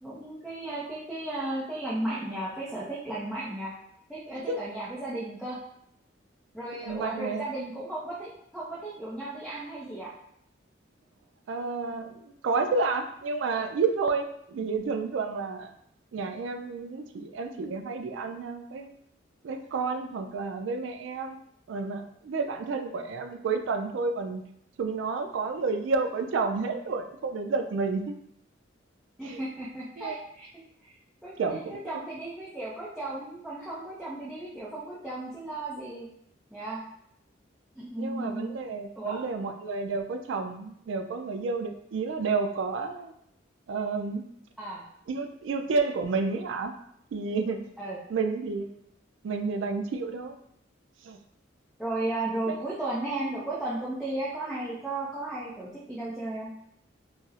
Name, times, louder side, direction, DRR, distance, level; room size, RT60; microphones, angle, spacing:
voice 1, 0.0-3.7 4.1-5.6 6.5-10.1 14.6-14.7 29.2-30.5 30.8-30.9 31.2-36.1 36.5-36.8 37.8-38.6 39.0-39.2 44.6-44.8 47.8-48.0 51.8-56.5, right 2 dB, ahead, -9 dB, 0.5 m, -35 dB
voice 2, 6.8-7.5 11.5-15.7 16.1-18.9 19.4-21.4 21.7-24.4 24.8-28.2 29.2-29.4 30.0-30.2 31.4-31.8 38.0-43.1 43.7-44.2 45.1-46.7 47.1-47.6 48.1-48.7 49.2-50.4 51.0-51.2 52.5-52.6, right 4 dB, 75° right, 7 dB, 0.3 m, -30 dB
4.0 x 2.0 x 2.4 m, 0.73 s
head